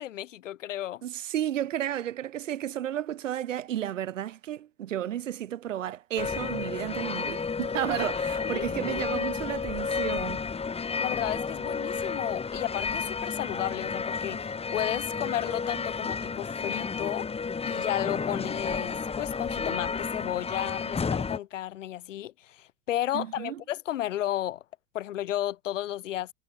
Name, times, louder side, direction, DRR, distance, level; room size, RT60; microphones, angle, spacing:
voice 1, 0.0-1.0 8.4-9.0 11.0-17.3 17.7-24.6 24.9-26.3, left 12 dB, 75° left, 1.8 m, -33 dB
voice 2, 1.0-10.4 23.1-23.6, right 11 dB, 80° right, 1.6 m, -32 dB
sound 1, 6.2-21.4, left 5 dB, 15° left, 1.4 m, -31 dB
hypercardioid pair, 80°, 38 cm